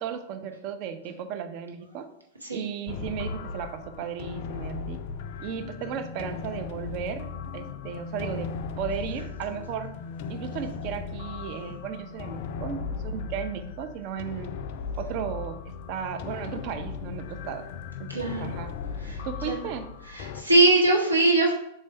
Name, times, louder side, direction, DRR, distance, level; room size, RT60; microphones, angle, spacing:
voice 1, 0.0-2.1 2.5-5.0 5.4-7.3 7.5-9.9 10.3-14.5 15.0-15.6 15.9-17.6 18.0-18.8 19.2-19.9, right 7 dB, 40° right, 8 dB, 0.4 m, -35 dB
sound 1, 2.9-20.4, left 5 dB, 45° left, 0.3 m, -37 dB
voice 2, 18.1-18.4 19.0-19.6 20.1-21.5, right 2 dB, 85° right, -2 dB, 0.8 m, -22 dB
3.7 x 3.1 x 4.2 m, 0.81 s
figure-of-eight pair, 95°, 0 cm